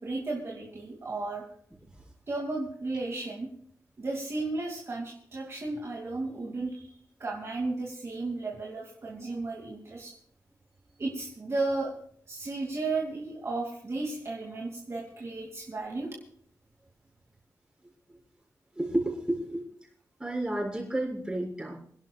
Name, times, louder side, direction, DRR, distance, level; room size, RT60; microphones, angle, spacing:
voice 1, 0.0-1.4 2.3-3.5 4.0-10.1 11.0-11.9 12.3-16.1, right 3 dB, 45° right, -2 dB, 2.5 m, -34 dB
voice 2, 18.8-19.6 20.2-21.8, right 1 dB, 15° right, -2 dB, 6.2 m, -31 dB
27.5 x 11.5 x 2.4 m, 0.62 s
wide cardioid pair, 120°, 6 cm